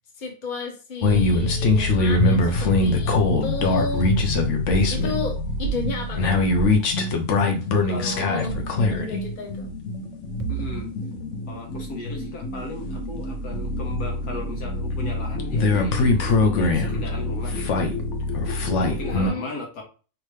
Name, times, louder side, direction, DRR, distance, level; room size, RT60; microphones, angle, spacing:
voice 1, 0.2-4.2 4.9-6.3 7.8-8.0 8.3-9.7 19.0-19.5, left 2 dB, 35° left, 1 dB, 1.1 m, -32 dB
sound 1, 1.0-19.3, left 2 dB, 60° left, 0.9 m, -23 dB
sound 2, 4.7-4.9 5.6-5.9 6.6-6.8 8.5-8.8 10.4-10.9, right 6 dB, 60° right, 0.7 m, -30 dB
voice 2, 7.9-8.5 10.5-10.9 11.5-17.9 18.8-19.8, left 2 dB, 90° left, -1 dB, 1.8 m, -37 dB
4.5 x 3.0 x 3.2 m, 0.35 s
omnidirectional pair, 1.6 m